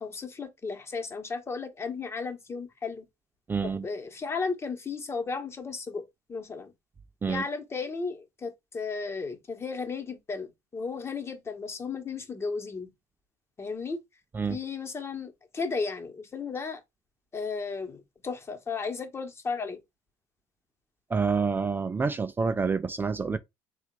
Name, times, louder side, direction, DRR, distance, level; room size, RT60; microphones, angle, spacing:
voice 1, 0.0-3.1 3.6-6.0 6.3-6.7 7.3-12.9 13.6-14.0 14.5-16.8 17.3-19.8, left 4 dB, 30° left, 1.1 m, -34 dB
voice 2, 3.5-3.9 7.2-7.4 14.3-14.6 21.1-23.4, right 5 dB, 20° right, 0.4 m, -27 dB
3.6 x 2.4 x 4.6 m
supercardioid pair, 85°, 9 cm